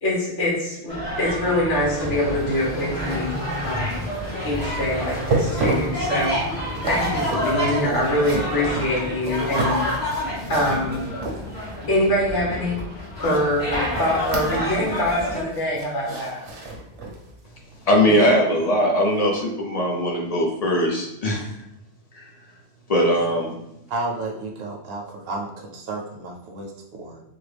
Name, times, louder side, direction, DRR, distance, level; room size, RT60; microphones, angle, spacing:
voice 1, 0.0-3.3 3.6-4.1 4.4-6.4 6.8-9.8 10.5-11.0 11.9-12.8 13.2-16.4 18.1-18.3, left 1 dB, 80° left, -5 dB, 1.6 m, -24 dB
sound 1, 0.9-15.4, equal, 60° left, 1.8 m, -28 dB
sound 2, 5.1-11.8 13.2-15.0 15.3-17.3 17.7-17.9 18.4-18.5, right 2 dB, 80° right, 1.1 m, -31 dB
voice 2, 17.9-21.4 22.1-22.3 22.9-23.5, equal, 40° left, -2 dB, 0.6 m, -20 dB
voice 3, 23.9-27.2, right 2 dB, 60° right, 0 dB, 0.8 m, -32 dB
3.6 x 2.2 x 3.3 m, 0.82 s
omnidirectional pair, 1.2 m